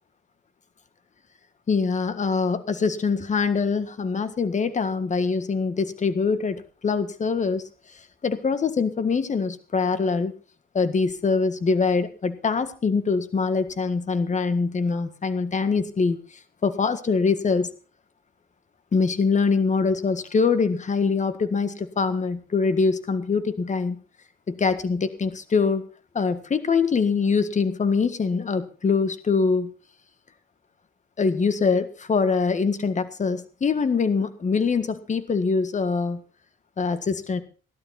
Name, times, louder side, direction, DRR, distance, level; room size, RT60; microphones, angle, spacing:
voice 1, 1.7-7.6 8.2-10.3 10.7-16.2 16.6-17.7 18.9-24.0 24.5-25.8 26.1-29.7 31.2-36.2 36.8-37.4, left 4 dB, 35° left, 12 dB, 1.7 m, -23 dB
17.0 x 12.0 x 4.1 m, 0.38 s
cardioid pair, 90°, 20 cm